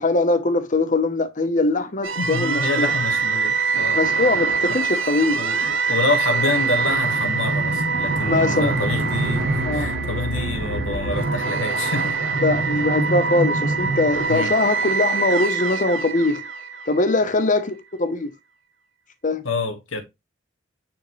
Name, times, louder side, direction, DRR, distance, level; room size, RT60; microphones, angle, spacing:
voice 1, 0.0-2.9 3.9-5.4 8.2-8.7 9.7-9.9 12.4-16.5 16.9-18.3 19.2-19.5, left 2 dB, 40° left, 1.0 m, -21 dB
sound 1, 2.0-17.2, right 4 dB, 80° right, 1.1 m, -24 dB
voice 2, 2.2-4.0 4.7-4.8 5.2-12.2 14.3-14.5 19.4-20.0, left 3 dB, 80° left, 2.1 m, -27 dB
9.6 x 3.7 x 3.2 m
head